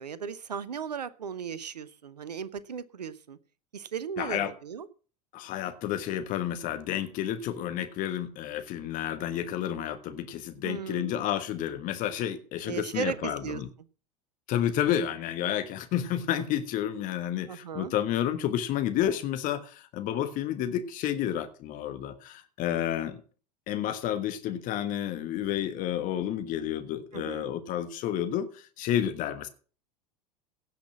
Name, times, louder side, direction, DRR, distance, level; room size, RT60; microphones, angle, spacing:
voice 1, 0.0-3.4 3.7-4.9 10.6-11.2 12.7-13.6 17.5-17.9 27.1-27.6, right 7 dB, 75° right, 0.8 m, -36 dB
voice 2, 4.2-4.5 5.3-13.7 14.5-23.2 23.7-29.5, left 11 dB, 40° left, 1.4 m, -30 dB
17.0 x 5.9 x 6.0 m
figure-of-eight pair, 80°, 21 cm